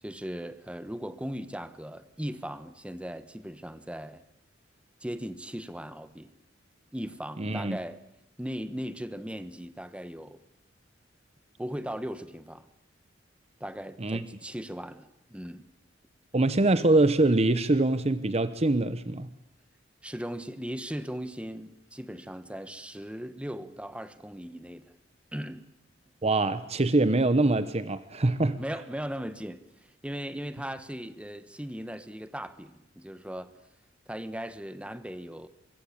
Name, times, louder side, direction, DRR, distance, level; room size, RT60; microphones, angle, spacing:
voice 1, 0.0-4.2 5.0-6.3 6.9-8.0 8.4-10.4 11.6-12.7 13.6-15.7 20.0-24.9 25.3-25.7 28.6-33.5 34.1-35.5, equal, 5° right, 1.2 m, -38 dB
voice 2, 7.4-7.8 14.0-14.2 16.3-19.3 26.2-28.6, right 2 dB, 30° right, 0.9 m, -24 dB
24.0 x 23.5 x 8.8 m
head